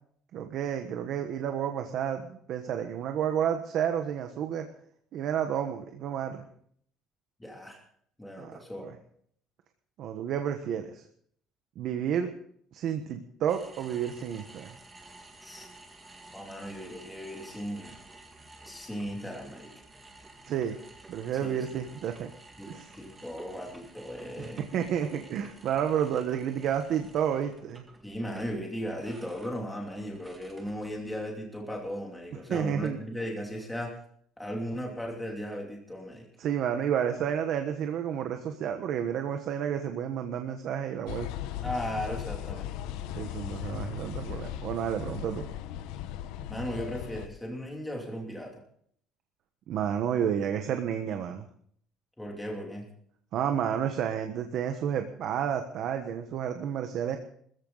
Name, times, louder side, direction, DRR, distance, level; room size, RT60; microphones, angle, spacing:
voice 1, 0.3-4.7 5.1-6.4 8.4-8.5 8.8-8.9 10.0-11.0 11.8-12.3 12.7-14.8 20.4-20.8 21.1-22.3 22.7-22.9 24.4-27.9 32.5-33.0 36.4-41.3 43.1-45.5 49.7-51.4 53.3-57.2, right 9 dB, 45° right, 6 dB, 1.2 m, -30 dB
voice 2, 7.4-7.8 8.2-8.9 15.4-15.7 16.3-17.9 18.6-19.7 21.4-21.7 22.6-24.6 28.0-34.0 34.4-36.3 41.6-42.9 46.5-48.6 52.2-52.9, equal, 5° left, -1 dB, 2.8 m, -37 dB
sound 1, 13.5-31.2, right 2 dB, 15° right, 1.8 m, -52 dB
sound 2, 41.1-47.3, left 11 dB, 85° left, 1.1 m, -37 dB
20.0 x 14.5 x 4.0 m, 0.62 s
cardioid pair, 175°, 0 cm